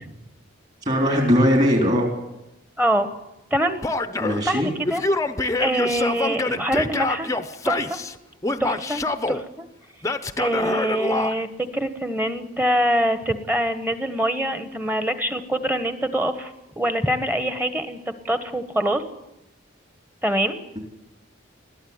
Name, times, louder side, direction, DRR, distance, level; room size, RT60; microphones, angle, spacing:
voice 1, 0.9-2.1 4.2-4.7, equal, 35° right, 2 dB, 3.8 m, -19 dB
voice 2, 2.8-3.1 3.5-3.8 4.4-5.0 5.6-7.3 7.6-8.0 8.6-9.0 9.3-9.7 10.4-19.0 20.2-20.6, right 1 dB, 10° right, 10 dB, 1.3 m, -24 dB
Male speech man speaking / Yell, 3.8-4.4 4.9-8.1 8.4-9.4 10.0-11.3, left 2 dB, 15° left, 0.8 m, -26 dB
21.0 x 14.5 x 9.7 m, 0.92 s
head